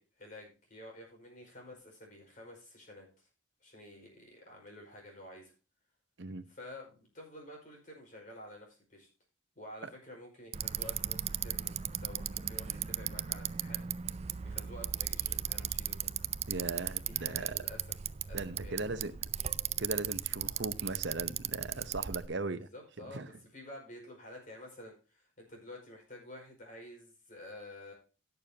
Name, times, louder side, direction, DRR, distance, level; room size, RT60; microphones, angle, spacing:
voice 1, 0.0-3.3 3.6-5.5 6.5-9.1 9.6-13.9 14.1-16.1 17.0-17.9 18.3-19.0 22.5-27.9, left 1 dB, 40° left, 5.0 m, -50 dB
voice 2, 6.2-6.5 9.8-9.9 16.5-17.6 18.3-19.1 19.8-22.7 23.0-23.3, right 3 dB, 55° right, 0.9 m, -38 dB
Bicycle, 10.5-22.3, right 10 dB, 30° right, 0.4 m, -36 dB
18.0 x 6.9 x 2.8 m
head